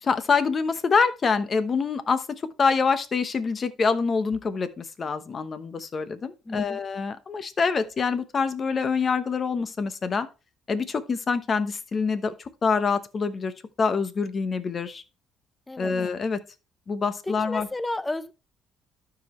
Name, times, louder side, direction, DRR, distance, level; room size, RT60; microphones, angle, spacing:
voice 1, 0.0-10.3 10.7-12.3 12.6-13.5 13.8-15.0 15.8-16.4 16.9-17.7, left 5 dB, 35° left, 0.9 m, -25 dB
voice 2, 6.5-6.8 15.7-15.9 17.3-18.3, left 2 dB, 15° left, 0.6 m, -32 dB
12.5 x 4.9 x 3.1 m
cardioid pair, 110°, 0 cm